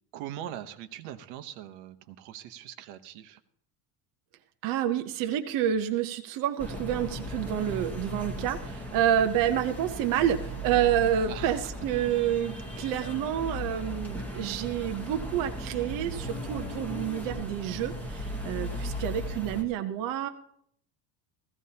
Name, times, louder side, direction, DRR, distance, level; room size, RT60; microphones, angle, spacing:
voice 1, 0.1-3.4 11.3-11.7, right 11 dB, 70° right, 10 dB, 1.0 m, -41 dB
voice 2, 4.6-20.3, right 10 dB, 45° right, 6 dB, 0.7 m, -28 dB
sound 1, 6.6-19.6, equal, 5° left, 1.0 m, -37 dB
16.5 x 14.5 x 2.8 m, 0.68 s
cardioid pair, 165°, 47 cm